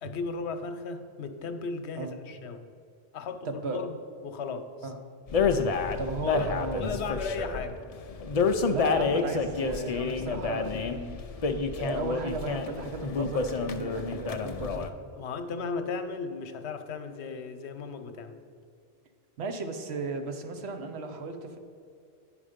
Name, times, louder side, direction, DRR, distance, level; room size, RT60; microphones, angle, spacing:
voice 1, 0.0-2.7 3.1-4.9 6.2-6.5 6.8-7.8 15.2-18.4, left 4 dB, 85° left, 9 dB, 1.0 m, -36 dB
voice 2, 3.4-3.8 4.8-5.0 6.0-7.0 8.7-11.2 11.7-14.9 19.4-21.6, right 3 dB, 80° right, 6 dB, 1.1 m, -35 dB
sound 1, 5.3-14.9, left 4 dB, 55° left, 0.4 m, -29 dB
9.9 x 5.1 x 5.0 m, 2.3 s
omnidirectional pair, 1.1 m